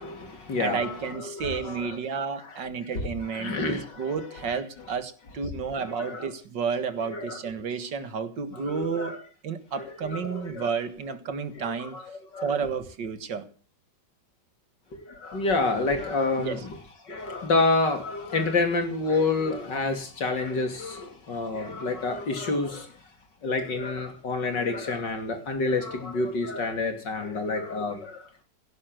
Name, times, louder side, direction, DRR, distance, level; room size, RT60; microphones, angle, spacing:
voice 1, 0.0-2.0 3.3-4.3 5.9-6.3 7.1-7.4 8.5-9.2 9.8-10.7 11.6-12.6 14.9-16.7 17.0-22.9 23.4-28.3, left 3 dB, 85° left, 3.5 m, -28 dB
voice 2, 0.6-9.2 9.4-12.0 12.4-13.5 16.4-16.6, right 6 dB, 85° right, 2.4 m, -31 dB
17.0 x 9.8 x 7.8 m
omnidirectional pair, 1.9 m